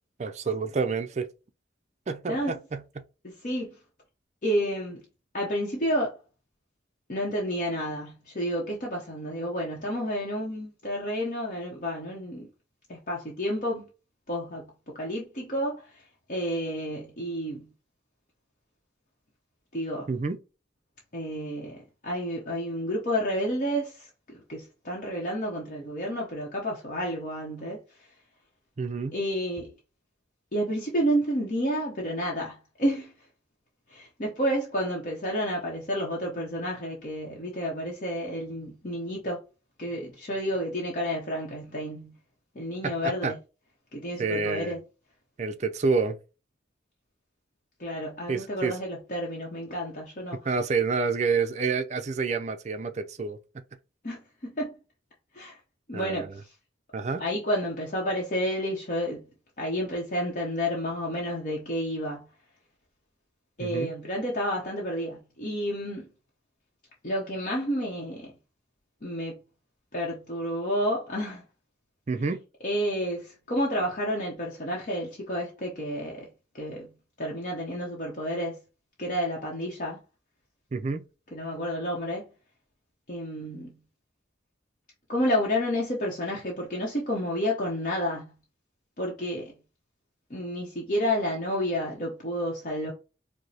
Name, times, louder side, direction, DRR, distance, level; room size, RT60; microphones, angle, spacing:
voice 1, 0.2-1.3 2.1-3.0 20.1-20.4 28.8-29.2 42.8-43.3 44.2-44.7 45.4-46.2 48.3-48.8 50.4-53.4 55.9-56.4 56.9-57.2 63.6-63.9 72.1-72.4 80.7-81.0, right 4 dB, 40° right, 0.4 m, -28 dB
voice 2, 2.2-2.6 3.2-3.8 4.4-5.0 5.3-6.2 7.1-12.5 12.9-13.9 14.3-16.0 16.3-17.7 19.7-20.1 21.1-28.1 29.1-29.7 30.5-33.1 33.9-39.4 39.8-42.2 42.5-43.4 43.9-44.8 47.8-50.4 54.0-54.7 55.3-55.6 55.9-56.5 57.2-59.3 59.6-62.3 63.6-66.1 67.0-68.3 69.0-69.4 69.9-71.4 72.6-76.3 76.5-76.9 77.2-78.6 79.0-80.0 81.3-82.3 83.1-83.8 85.1-88.3 89.0-89.5 90.3-92.9, equal, 45° left, 0.8 m, -30 dB
4.9 x 2.0 x 2.8 m
head